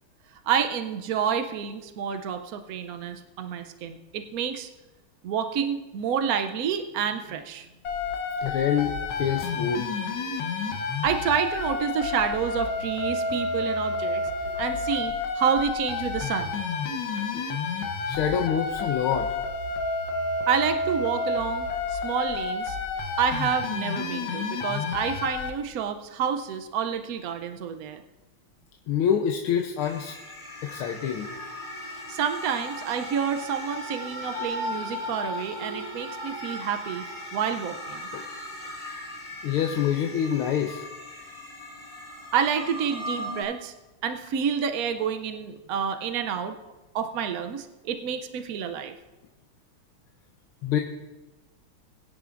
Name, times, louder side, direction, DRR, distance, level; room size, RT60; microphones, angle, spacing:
voice 1, 0.4-4.7 5.2-7.7 11.0-14.2 14.6-16.6 20.5-22.8 23.2-28.0 31.8-37.0 37.3-38.1 42.3-43.7 44.0-46.6 46.9-48.9, right 7 dB, 75° right, 7 dB, 0.8 m, -29 dB
sound 1, 7.8-25.5, left 3 dB, 70° left, 1.8 m, -30 dB
voice 2, 8.4-9.9 17.3-17.4 18.1-19.3 28.9-30.1 30.6-31.3 38.1-38.2 39.4-40.8 50.6-50.8, left 8 dB, 85° left, 4 dB, 1.7 m, -26 dB
sound 2, 29.8-43.4, left 1 dB, 15° left, 3.1 m, -37 dB
21.5 x 10.0 x 2.5 m, 1.1 s
omnidirectional pair, 2.3 m